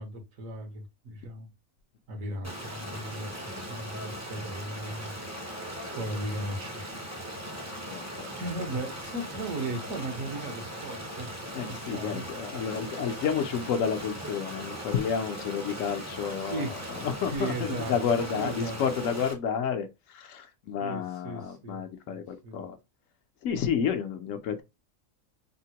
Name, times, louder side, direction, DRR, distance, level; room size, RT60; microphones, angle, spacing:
voice 1, 0.0-1.5 2.1-7.1 8.4-12.3 16.5-17.9 18.2-18.8 20.8-22.6, right 1 dB, 75° right, 1.5 m, -37 dB
Stream, 2.4-19.3, equal, 20° right, 0.4 m, -39 dB
voice 2, 7.8-8.3 11.5-16.7 17.0-22.8 23.4-24.6, left 7 dB, 75° left, 1.0 m, -30 dB
3.5 x 2.1 x 2.8 m
omnidirectional pair, 1.4 m